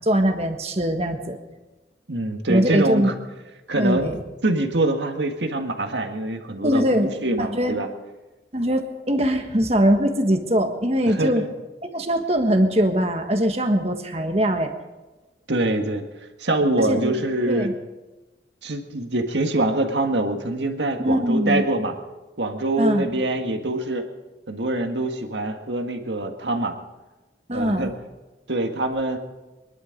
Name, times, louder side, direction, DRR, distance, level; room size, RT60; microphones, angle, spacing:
voice 1, 0.0-1.4 2.5-3.1 3.8-4.2 6.6-7.1 7.4-7.7 8.5-11.4 11.8-14.7 16.8-17.7 21.0-21.6 22.8-23.1 27.5-27.9, equal, 35° right, 6 dB, 1.5 m, -22 dB
voice 2, 2.1-3.1 3.7-4.1 4.4-7.9 11.1-11.5 15.5-16.0 16.4-17.7 18.6-21.9 22.4-24.0 24.5-26.7 27.5-27.9 28.5-29.2, right 2 dB, 85° right, 5 dB, 1.7 m, -24 dB
23.5 x 11.5 x 5.2 m, 1.1 s
head